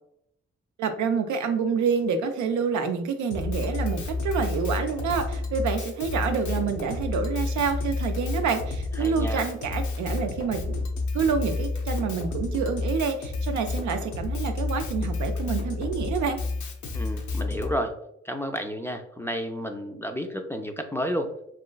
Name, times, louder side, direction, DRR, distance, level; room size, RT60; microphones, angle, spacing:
voice 1, 0.8-10.8 11.1-16.4, right 6 dB, 80° right, 7 dB, 0.4 m, -27 dB
Drum kit, 3.3-17.7, left 3 dB, 80° left, 0.6 m, -30 dB
voice 2, 9.0-9.5 16.9-18.0 18.2-21.3, equal, 10° left, 3 dB, 0.3 m, -31 dB
2.9 x 2.4 x 2.2 m, 0.75 s
supercardioid pair, 50°, 29 cm